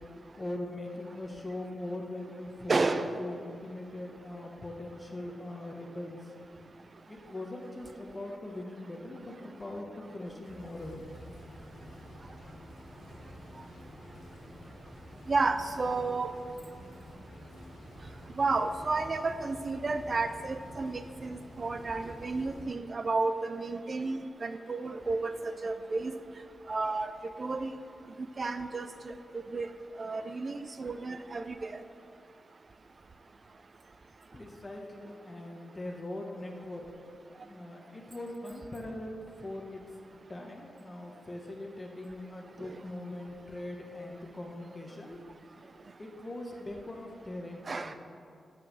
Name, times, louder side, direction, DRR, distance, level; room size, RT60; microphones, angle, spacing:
voice 1, 0.4-2.9 3.2-6.3 7.1-11.0 34.3-36.9 37.4-39.9 40.3-45.2 46.0-47.9, left 1 dB, 25° left, 1 dB, 1.0 m, -41 dB
voice 2, 2.7-3.1 15.3-16.3 18.4-25.3 25.6-26.1 26.7-27.1 27.4-27.7 28.4-28.9 29.5-29.7 30.0-31.4 47.7-47.9, right 3 dB, 40° right, 10 dB, 0.5 m, -31 dB
sound 1, 10.4-22.6, equal, 85° left, 1.4 m, -49 dB
7.1 x 5.8 x 6.3 m, 2.4 s
cardioid pair, 100°, 0 cm